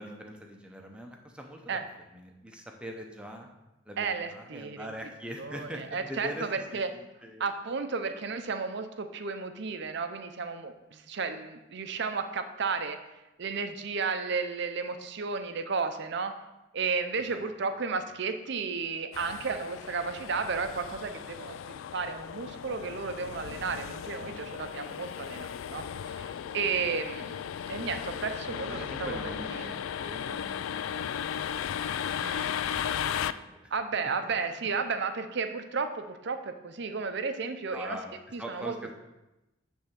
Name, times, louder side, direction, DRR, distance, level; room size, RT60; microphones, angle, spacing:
voice 1, 0.0-3.5 3.9-6.8 7.2-7.4 17.3-17.4 24.2-25.0 26.6-26.7 28.5-31.4 31.6-33.7 37.7-38.9, equal, 5° right, 2 dB, 0.8 m, -43 dB
voice 2, 4.0-4.9 5.4-6.9 7.4-13.0 13.4-16.3 16.7-21.6 21.9-27.4 27.7-29.8 32.2-32.6 33.7-38.0 38.3-38.7, right 5 dB, 60° right, 8 dB, 0.6 m, -33 dB
sound 1, 19.1-33.3, left 8 dB, 80° left, 0.3 m, -36 dB
9.6 x 3.5 x 5.8 m, 0.99 s
head